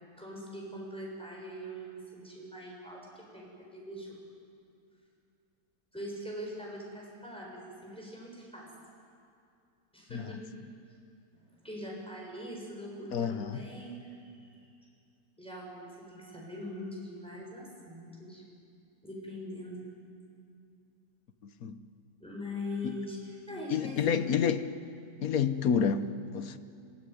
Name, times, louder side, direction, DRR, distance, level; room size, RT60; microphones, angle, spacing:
voice 1, 0.2-4.2 5.9-8.7 9.9-10.4 11.3-14.7 15.4-18.4 19.0-19.9 22.2-24.5, left 1 dB, 5° left, 7.0 m, -42 dB
voice 2, 13.1-13.7 21.6-21.8 22.8-23.0 23.7-24.6 25.2-26.6, left 7 dB, 60° left, 1.3 m, -29 dB
26.5 x 18.5 x 9.6 m
omnidirectional pair, 1.8 m